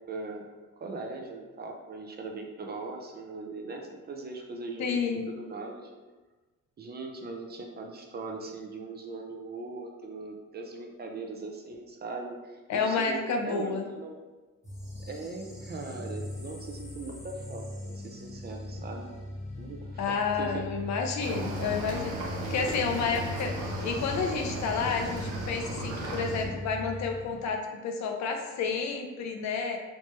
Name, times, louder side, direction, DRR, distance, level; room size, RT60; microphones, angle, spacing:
voice 1, 0.1-0.5 0.8-5.0 5.3-5.9 6.8-14.2 15.0-19.1 19.6-20.6, right 3 dB, 35° right, 2 dB, 0.4 m, -40 dB
voice 2, 4.8-5.2 12.7-13.8 20.0-23.5 23.8-29.8, left 5 dB, 65° left, 3 dB, 0.5 m, -30 dB
sound 1, 14.6-27.4, left 1 dB, 20° left, 1.0 m, -40 dB
Cricket / Waves surf, 21.2-26.5, right 1 dB, 75° right, 0.7 m, -36 dB
3.1 x 2.1 x 3.0 m, 1.2 s
cardioid pair, 90°, 30 cm